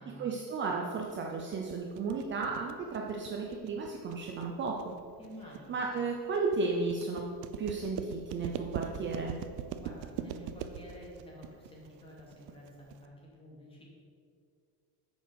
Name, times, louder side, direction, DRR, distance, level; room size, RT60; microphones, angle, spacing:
voice 1, 0.2-5.0 5.7-7.2 7.6-9.4, right 4 dB, 30° right, 0 dB, 0.6 m, -34 dB
sound 1, 1.1-13.1, right 9 dB, 65° right, 0.7 m, -42 dB
voice 2, 5.2-5.8 9.8-13.8, equal, 15° left, -4 dB, 2.4 m, -50 dB
9.2 x 6.5 x 6.9 m, 2.3 s
cardioid pair, 175°, 41 cm